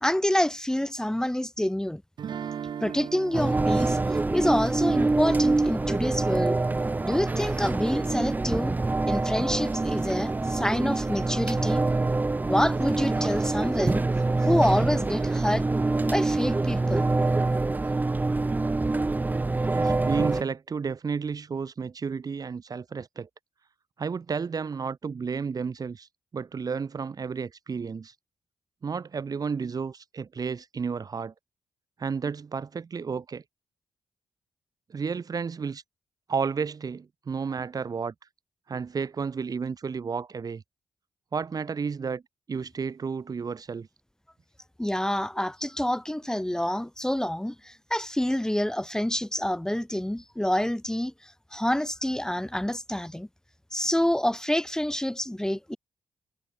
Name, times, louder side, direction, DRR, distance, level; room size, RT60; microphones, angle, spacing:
voice 1, 0.0-2.0 2.8-6.6 7.0-8.7 9.0-11.8 12.4-14.0 14.4-15.6 16.1-17.1 44.8-53.3 53.7-55.8, left 1 dB, 10° left, 1.6 m, -27 dB
sound 1, 2.2-7.1, right 8 dB, 70° right, 5.1 m, -40 dB
sound 2, 3.3-20.4, right 3 dB, 20° right, 0.6 m, -25 dB
voice 2, 19.7-23.3 24.0-26.1 26.3-28.1 28.8-31.3 32.0-33.4 34.9-35.8 36.3-38.1 38.7-40.6 41.3-42.2 42.5-43.9, right 5 dB, 50° right, 2.6 m, -32 dB
supercardioid pair, 50°, 8 cm